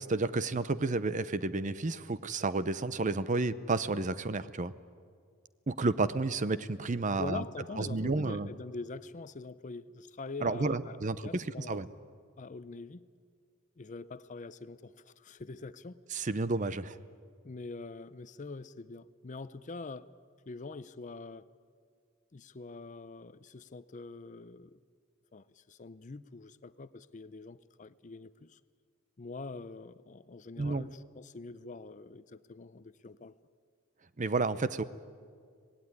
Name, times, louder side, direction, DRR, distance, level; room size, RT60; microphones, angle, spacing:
voice 1, 0.0-4.7 5.7-7.4 7.8-8.5 10.4-11.9 16.1-16.9 30.6-30.8 34.2-34.8, right 3 dB, 35° right, 0.7 m, -31 dB
voice 2, 7.2-11.0 11.2-12.0 12.4-13.0 13.8-16.0 17.4-20.1 20.5-21.5 22.3-24.8 25.3-28.6 29.2-33.3, left 3 dB, 35° left, 0.6 m, -44 dB
25.5 x 19.0 x 9.6 m
head